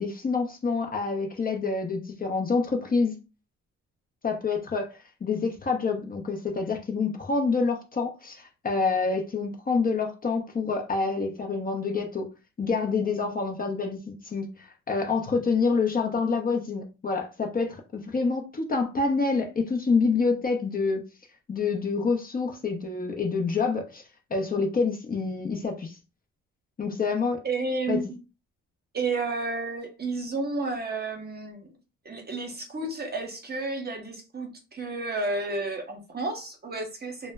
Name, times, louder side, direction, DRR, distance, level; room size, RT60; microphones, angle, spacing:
voice 1, 0.0-3.2 4.2-12.3 12.6-21.0 21.5-24.0 24.3-26.0 26.8-27.4 27.9-28.0, left 4 dB, 30° left, 0.6 m, -27 dB
voice 2, 27.4-28.2 28.9-31.7 32.0-37.3, right 3 dB, 30° right, 0.8 m, -31 dB
2.1 x 2.1 x 3.4 m
cardioid pair, 90°, 30 cm